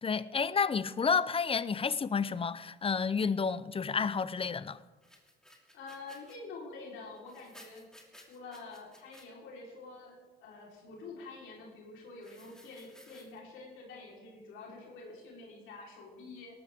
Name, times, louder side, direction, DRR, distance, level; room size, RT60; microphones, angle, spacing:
voice 1, 0.0-4.8, left 5 dB, 30° left, 0.6 m, -30 dB
sound 1, 5.0-6.4 7.2-9.3 12.2-13.4, equal, 5° left, 2.8 m, -57 dB
voice 2, 5.7-16.5, left 3 dB, 90° left, 4.1 m, -47 dB
18.0 x 13.5 x 3.7 m
cardioid pair, 90°, 20 cm